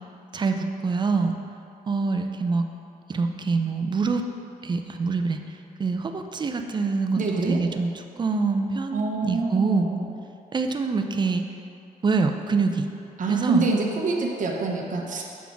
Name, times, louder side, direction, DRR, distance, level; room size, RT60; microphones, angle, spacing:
voice 1, 0.3-1.3 1.9-2.6 3.1-4.3 4.6-5.4 5.8-7.9 8.2-9.9 10.5-11.4 12.0-12.9 13.3-13.6, right 4 dB, 30° right, 6 dB, 0.5 m, -25 dB
voice 2, 7.2-7.6 8.9-10.1 13.2-15.2, right 3 dB, 60° right, 0 dB, 0.8 m, -26 dB
7.1 x 4.1 x 4.6 m, 2.6 s
cardioid pair, 105°, 15 cm